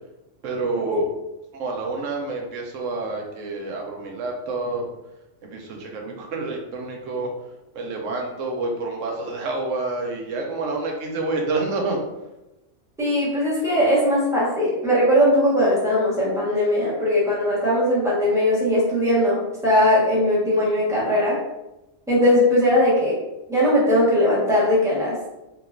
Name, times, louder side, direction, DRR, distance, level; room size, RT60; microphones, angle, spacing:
voice 1, 0.4-1.1 1.5-4.8 5.4-7.3 7.8-12.0, right 3 dB, 75° right, 1 dB, 1.0 m, -28 dB
voice 2, 13.0-21.4 22.1-23.2 23.5-25.2, left 1 dB, 5° right, -7 dB, 1.1 m, -19 dB
4.5 x 2.8 x 2.5 m, 0.96 s
omnidirectional pair, 1.3 m